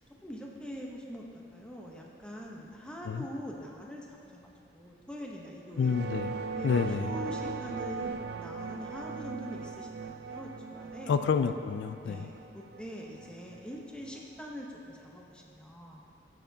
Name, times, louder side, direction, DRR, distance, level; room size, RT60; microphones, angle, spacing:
voice 1, 0.2-6.0 6.6-11.1 12.0-16.1, equal, 5° left, -2 dB, 0.8 m, -43 dB
sound 1, 5.7-14.4, right 5 dB, 60° right, 0.4 m, -39 dB
voice 2, 5.8-6.3 6.6-7.1 11.1-12.3, left 6 dB, 80° left, 10 dB, 0.3 m, -28 dB
14.0 x 6.6 x 2.7 m, 2.6 s
head